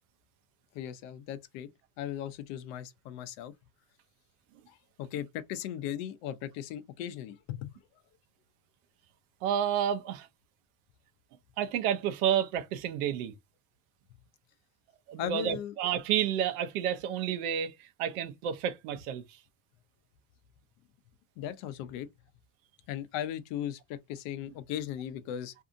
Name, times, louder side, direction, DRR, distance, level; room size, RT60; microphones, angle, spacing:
voice 1, 0.7-1.7 2.0-3.5 4.7-7.7 15.2-15.8 21.4-22.1 22.9-25.5, left 10 dB, 65° left, 0.7 m, -37 dB
voice 2, 9.4-10.3 11.6-13.3 15.1-19.2, right 9 dB, 80° right, 0.7 m, -30 dB
2.7 x 2.5 x 2.5 m
supercardioid pair, 125°, 42 cm